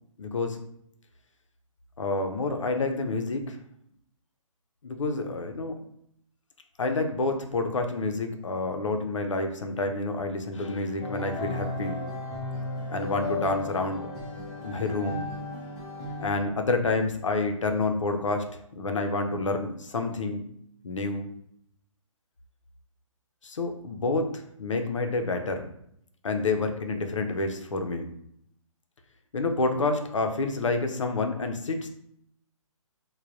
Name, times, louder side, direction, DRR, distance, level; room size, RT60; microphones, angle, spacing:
voice 1, 0.2-0.6 2.0-3.6 4.8-5.8 6.8-12.0 12.9-14.1 14.6-15.3 16.2-20.5 20.8-21.3 23.4-25.7 26.2-28.1 29.3-31.9, left 3 dB, 65° left, 5 dB, 0.5 m, -28 dB
sound 1, 11.0-16.3, left 3 dB, 10° left, 0.3 m, -35 dB
3.3 x 2.1 x 2.6 m, 0.71 s
figure-of-eight pair, 130°, 17 cm